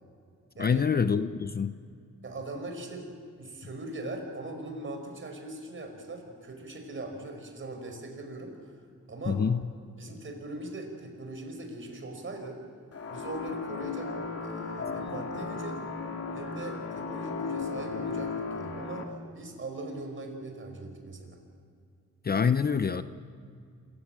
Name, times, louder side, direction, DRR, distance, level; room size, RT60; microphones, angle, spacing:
voice 1, 0.6-1.7 9.3-9.6 22.2-23.0, left 6 dB, 30° left, 12 dB, 0.7 m, -25 dB
voice 2, 2.2-3.1 3.4-9.4 10.0-12.6 13.1-14.1 14.4-15.8 16.3-21.4, right 2 dB, 40° right, 4 dB, 5.1 m, -40 dB
sound 1, 12.9-19.0, left 4 dB, 50° left, 2.4 m, -35 dB
27.0 x 15.0 x 8.8 m, 2.3 s
cardioid pair, 105°, 31 cm